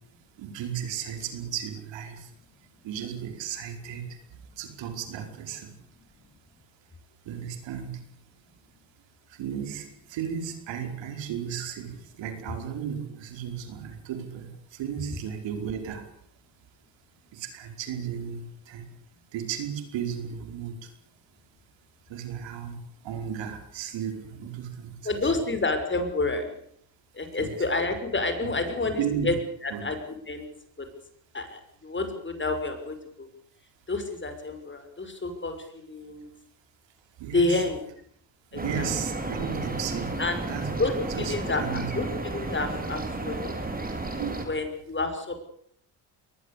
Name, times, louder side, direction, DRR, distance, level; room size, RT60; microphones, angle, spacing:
voice 1, 0.4-2.3 2.8-4.2 4.6-5.7 7.2-8.0 9.4-16.0 17.3-18.9 19.3-20.8 22.1-22.8 23.0-24.9 27.4-27.6 28.4-28.5 29.0-29.3 29.7-29.8 37.2-37.6 38.5-40.1 40.5-40.7 41.1-41.9 44.2-44.4, right 8 dB, 85° right, 6 dB, 5.0 m, -34 dB
voice 2, 25.0-26.6 27.1-29.3 29.6-30.0 30.3-30.4 30.8-30.9 31.3-33.3 33.9-36.3 37.3-37.8 38.5-38.9 40.2-40.4 40.8-41.6 42.0-43.5 44.4-45.3, left 3 dB, 25° left, 7 dB, 6.2 m, -29 dB
sound 1, 38.6-44.4, right 2 dB, 20° right, 4.9 m, -32 dB
22.0 x 19.5 x 8.5 m, 0.66 s
cardioid pair, 85°, 43 cm